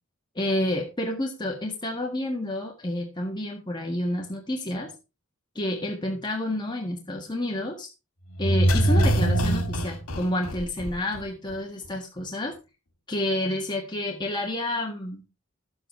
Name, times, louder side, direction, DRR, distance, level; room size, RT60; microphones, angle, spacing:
voice 1, 0.3-4.9 5.5-7.9 8.4-12.5 13.1-15.2, left 1 dB, 20° left, 1 dB, 1.7 m, -29 dB
sound 1, 8.4-11.2 11.5-11.6, right 1 dB, 90° left, 2.0 m, -23 dB
11.5 x 8.0 x 4.4 m, 0.29 s
head